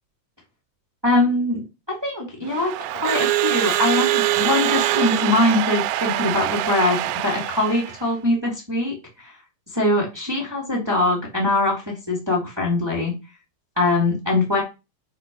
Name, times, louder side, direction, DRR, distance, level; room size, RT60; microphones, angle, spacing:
voice 1, 1.0-1.6 1.9-9.3 9.7-13.1 13.7-14.6, left 2 dB, 15° right, -2 dB, 1.0 m, -22 dB
Crowd / Alarm, 2.5-8.0, right 14 dB, 85° right, 2.5 m, -23 dB
6.4 x 4.7 x 5.4 m, 0.27 s
omnidirectional pair, 5.4 m